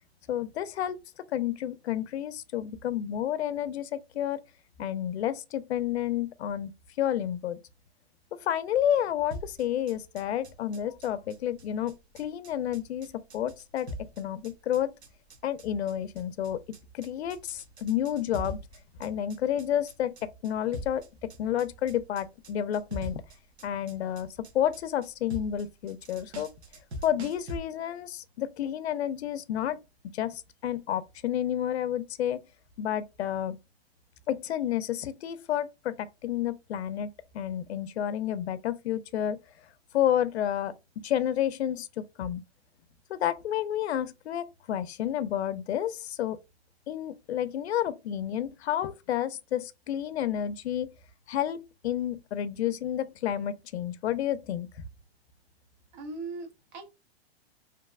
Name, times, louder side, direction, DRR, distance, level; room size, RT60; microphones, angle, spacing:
voice 1, 0.3-4.4 4.8-6.7 7.0-7.6 8.3-14.9 15.4-18.6 19.0-23.2 23.6-26.5 27.0-29.8 30.1-32.4 32.8-33.6 34.3-39.4 39.9-42.4 43.1-46.4 46.9-50.9 51.3-54.7, left 10 dB, 80° left, 0.5 m, -30 dB
sound 1, 9.3-27.6, equal, 90° right, 0.9 m, -43 dB
voice 2, 55.9-56.9, right 3 dB, 45° right, 0.8 m, -39 dB
2.8 x 2.0 x 2.3 m
hypercardioid pair, 145°, 32 cm